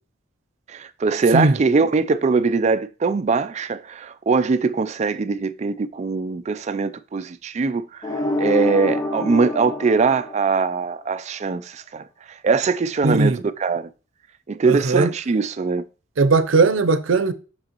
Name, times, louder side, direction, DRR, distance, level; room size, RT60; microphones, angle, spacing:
voice 1, 0.7-8.1 8.4-12.0 12.4-13.9 14.5-15.8, right 4 dB, 35° right, 0.4 m, -21 dB
sound 1, 8.0-11.0, left 1 dB, 20° left, 0.6 m, -26 dB
voice 2, 13.0-13.4 14.6-15.1 16.2-17.3, right 3 dB, 80° right, 0.6 m, -18 dB
6.4 x 6.1 x 2.9 m
head